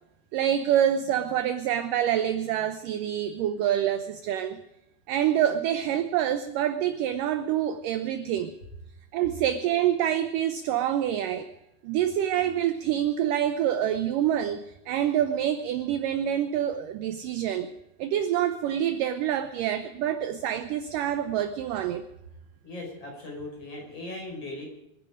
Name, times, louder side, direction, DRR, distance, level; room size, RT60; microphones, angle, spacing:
voice 1, 0.3-4.6 5.1-8.6 9.1-11.5 11.8-17.7 18.0-22.0, right 10 dB, 75° right, 9 dB, 2.0 m, -26 dB
voice 2, 22.6-24.6, left 2 dB, 35° left, 0 dB, 5.9 m, -38 dB
26.0 x 11.0 x 5.0 m, 0.88 s
omnidirectional pair, 4.7 m